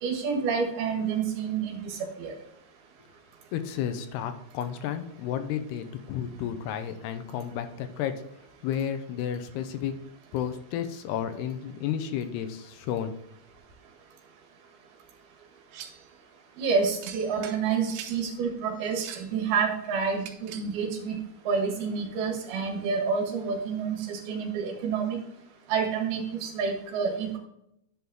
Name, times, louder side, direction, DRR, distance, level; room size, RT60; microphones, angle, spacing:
voice 1, 0.0-2.3 16.6-21.2 21.5-25.2 25.7-27.4, right 5 dB, 70° right, 1 dB, 3.4 m, -28 dB
voice 2, 3.5-8.2 8.6-10.0 10.3-13.1, left 9 dB, 90° left, 9 dB, 2.8 m, -32 dB
sound 1, 15.7-16.1 17.0-18.2 18.8-19.3 20.2-20.8, right 10 dB, 90° right, 2.9 m, -43 dB
10.5 x 5.4 x 3.6 m, 0.77 s
omnidirectional pair, 4.7 m